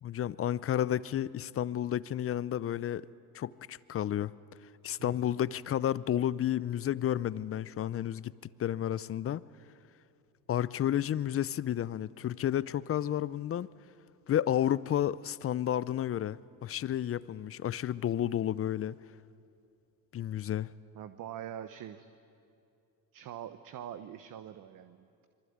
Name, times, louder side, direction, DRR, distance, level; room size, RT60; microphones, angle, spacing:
voice 1, 0.0-3.1 3.3-4.3 4.8-8.3 8.6-9.4 10.5-13.7 14.3-19.0 20.1-20.7, left 11 dB, 30° left, 0.6 m, -31 dB
voice 2, 4.9-5.4 20.9-22.1 23.1-25.3, right 10 dB, 45° right, 1.2 m, -44 dB
26.0 x 23.5 x 8.8 m
hypercardioid pair, 80°, 46 cm